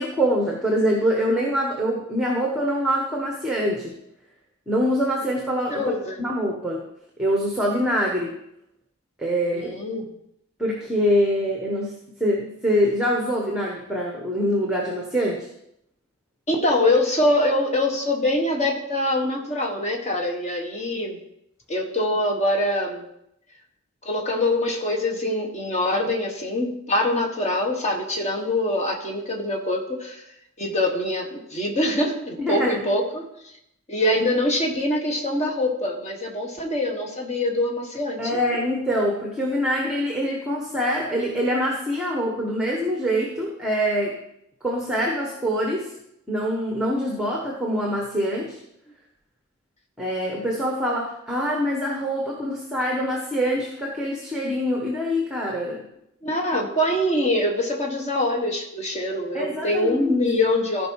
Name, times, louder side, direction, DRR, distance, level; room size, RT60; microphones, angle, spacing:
voice 1, 0.0-3.9 4.7-6.9 7.2-8.4 9.2-9.7 10.6-15.5 32.4-32.8 38.2-44.2 44.6-45.9 46.3-48.6 50.0-55.9 59.3-60.2, equal, 5° right, -1 dB, 1.1 m, -24 dB
voice 2, 5.7-6.2 9.5-10.1 16.5-21.2 21.7-23.0 24.0-30.2 30.6-33.3 33.9-38.4 56.2-60.9, left 1 dB, 30° left, 1 dB, 1.4 m, -24 dB
14.5 x 5.3 x 4.7 m, 0.80 s
head